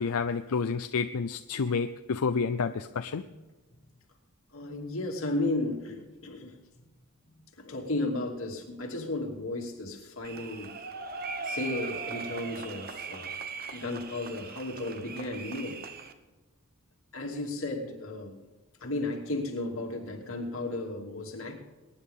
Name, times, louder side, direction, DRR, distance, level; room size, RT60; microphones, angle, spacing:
voice 1, 0.0-3.2, left 5 dB, 85° left, 8 dB, 0.5 m, -29 dB
voice 2, 4.5-6.5 7.6-10.7 11.4-13.4 13.7-15.8 17.1-18.4 18.8-21.5, left 2 dB, 60° left, 0 dB, 2.8 m, -34 dB
sound 1, 10.2-16.1, right 4 dB, 40° right, 1.0 m, -39 dB
22.0 x 10.0 x 3.7 m, 1.2 s
head